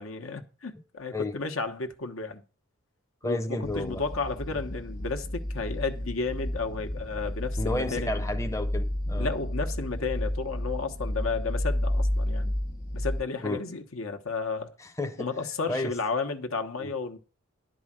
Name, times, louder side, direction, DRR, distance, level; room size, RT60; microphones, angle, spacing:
voice 1, 0.0-2.4 3.2-8.3 9.2-12.5 12.9-14.7 15.2-17.2, left 4 dB, 80° left, 1.2 m, -33 dB
voice 2, 3.2-4.0 7.6-9.3 13.4-13.6 14.8-15.3 15.7-16.0 16.8-16.9, left 2 dB, 15° left, 0.6 m, -32 dB
sound 1, 3.6-13.2, left 1 dB, 40° left, 1.1 m, -31 dB
11.0 x 4.9 x 7.5 m
head